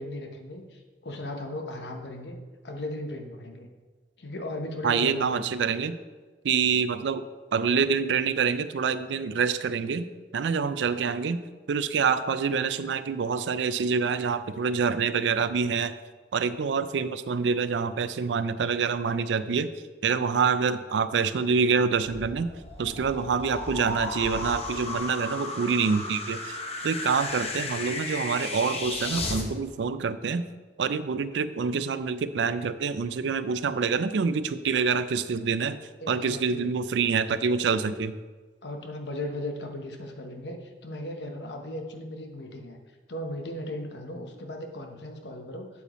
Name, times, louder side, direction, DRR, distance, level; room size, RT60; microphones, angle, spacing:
voice 1, 0.0-2.4 2.6-3.7 4.2-5.5 36.0-36.8 38.6-42.8 43.1-45.7, left 1 dB, 75° left, 4 dB, 0.9 m, -37 dB
voice 2, 4.8-6.0 6.4-7.2 7.5-10.1 10.3-11.4 11.7-15.9 16.3-19.7 20.0-22.5 22.8-26.6 26.8-30.4 30.8-35.8 36.1-38.1, right 5 dB, 85° right, 13 dB, 0.4 m, -26 dB
sound 1, 22.0-29.4, left 2 dB, 35° left, 0.9 m, -34 dB
8.0 x 7.3 x 3.0 m, 1.4 s
head